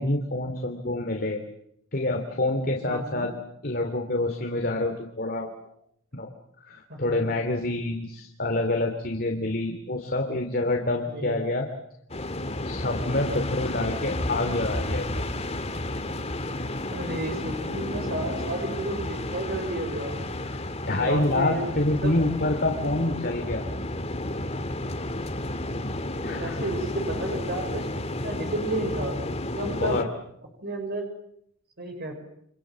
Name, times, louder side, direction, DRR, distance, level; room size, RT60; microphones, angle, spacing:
voice 1, 0.0-1.4 1.9-3.3 3.6-5.6 6.1-6.3 6.6-11.7 12.6-15.0 20.4-20.6 20.9-23.6 26.2-26.7 29.8-30.1, left 2 dB, 45° left, 4 dB, 2.8 m, -27 dB
voice 2, 2.9-3.3 6.9-7.3 11.1-11.5 16.9-20.2 20.8-21.6 22.0-22.2 26.1-29.2 29.5-30.0 30.6-31.1 31.8-32.1, right 1 dB, 50° right, 4 dB, 5.5 m, -32 dB
sound 1, 12.1-30.0, left 1 dB, 30° left, 2.0 m, -32 dB
29.5 x 26.5 x 7.4 m, 0.73 s
head